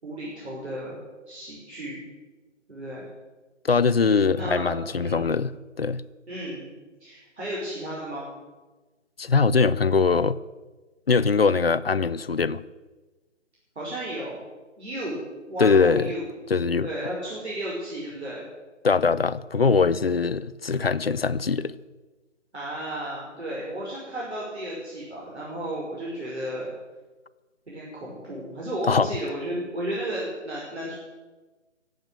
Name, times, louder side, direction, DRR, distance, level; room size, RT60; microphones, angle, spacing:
voice 1, 0.0-1.0 1.3-2.0 2.7-3.0 4.3-4.7 5.0-5.2 6.3-6.7 7.0-8.3 13.8-14.4 14.8-15.2 15.5-16.2 16.8-18.4 22.5-26.7 27.7-30.9, right 1 dB, 60° right, 5.8 m, -33 dB
voice 2, 3.6-5.5 5.8-6.0 9.2-10.4 11.1-12.6 15.6-16.1 16.5-16.9 18.8-21.7 28.9-29.1, left 5 dB, 50° left, 0.6 m, -22 dB
18.5 x 7.9 x 8.9 m
figure-of-eight pair, 165°, 37 cm